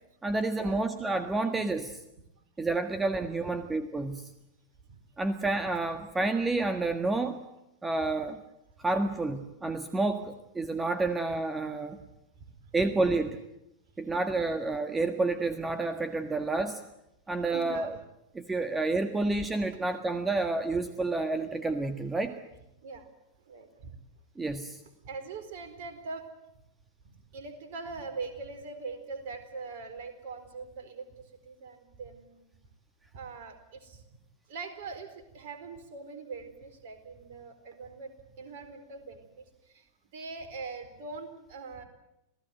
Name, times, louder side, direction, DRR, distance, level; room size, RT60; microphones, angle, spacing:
voice 1, 0.2-2.0 2.6-4.3 5.2-7.4 7.8-8.4 8.8-12.0 12.7-13.4 14.0-16.8 17.3-17.9 18.3-22.3 24.4-24.8, right 3 dB, 10° right, 9 dB, 1.5 m, -29 dB
voice 2, 17.5-17.9 22.8-23.1 23.5-23.9 25.0-26.3 27.0-32.6 33.1-34.0 34.5-39.9 40.1-41.8, right 4 dB, 50° right, 7 dB, 4.3 m, -42 dB
27.0 x 17.0 x 9.4 m, 0.87 s
figure-of-eight pair, 90°, 0 cm